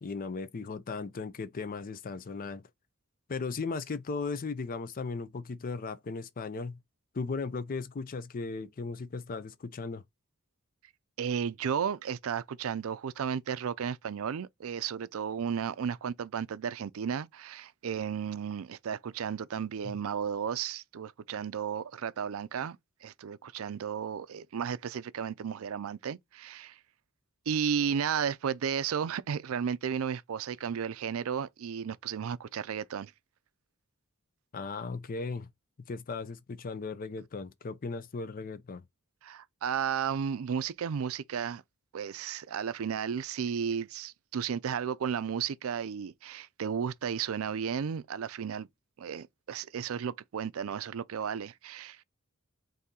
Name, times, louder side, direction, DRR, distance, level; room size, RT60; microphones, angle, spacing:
voice 1, 0.0-2.7 3.3-6.8 7.1-10.0 34.5-35.5 35.9-38.8, left 4 dB, 40° left, 0.5 m, -37 dB
voice 2, 11.2-22.8 23.0-26.8 27.5-33.1 39.2-41.6 41.9-48.7 49.0-52.0, right 7 dB, 70° right, 0.4 m, -33 dB
4.2 x 2.7 x 3.7 m
head